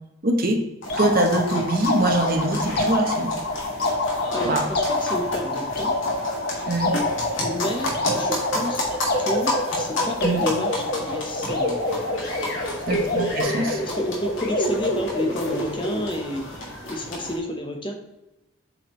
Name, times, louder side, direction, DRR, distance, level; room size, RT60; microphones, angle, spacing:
voice 1, 0.2-0.6 1.0-3.3 4.4-4.7 6.7-6.9 10.2-10.4 12.9-13.8, right 1 dB, 45° right, 3 dB, 0.9 m, -23 dB
sound 1, 0.8-17.4, left 1 dB, 70° left, 1.9 m, -32 dB
sound 2, 0.9-16.1, left 1 dB, 50° left, 1.0 m, -27 dB
voice 2, 4.0-5.9 7.4-8.9 9.2-11.8 12.8-13.0 13.8-16.6 16.8-17.9, left 1 dB, 25° left, 3 dB, 0.8 m, -30 dB
7.5 x 4.9 x 3.0 m, 0.94 s
head